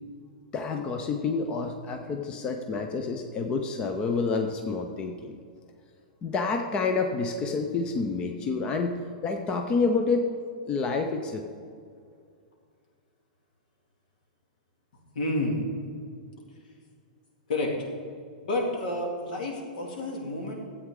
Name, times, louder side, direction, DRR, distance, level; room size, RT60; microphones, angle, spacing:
voice 1, 0.5-5.4 6.2-10.3 10.6-11.5, left 4 dB, 20° left, 5 dB, 0.5 m, -28 dB
voice 2, 15.1-15.6 17.5-17.7 18.4-20.5, left 1 dB, 70° left, 0 dB, 2.3 m, -29 dB
13.0 x 8.3 x 3.7 m, 2.3 s
supercardioid pair, 160°, 5 cm